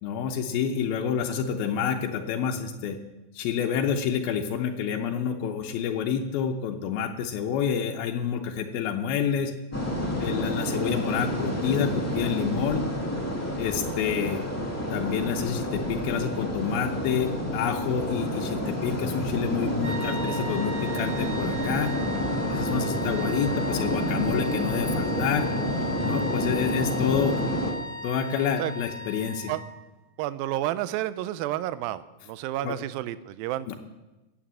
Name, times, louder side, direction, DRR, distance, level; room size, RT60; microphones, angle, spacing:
voice 1, 0.0-3.0 3.3-9.5 10.2-12.8 13.6-14.4 14.9-21.9 22.5-25.5 26.0-27.4 28.0-29.5 32.6-32.8 33.7-33.8, left 7 dB, 90° left, 2 dB, 2.8 m, -28 dB
sound 1, 9.7-27.7, equal, 5° left, 1.1 m, -29 dB
sound 2, 19.8-29.8, left 1 dB, 35° right, 2.8 m, -37 dB
voice 2, 30.2-33.8, right 14 dB, 80° right, 14 dB, 2.4 m, -30 dB
16.0 x 9.0 x 7.4 m, 1.1 s
omnidirectional pair, 4.2 m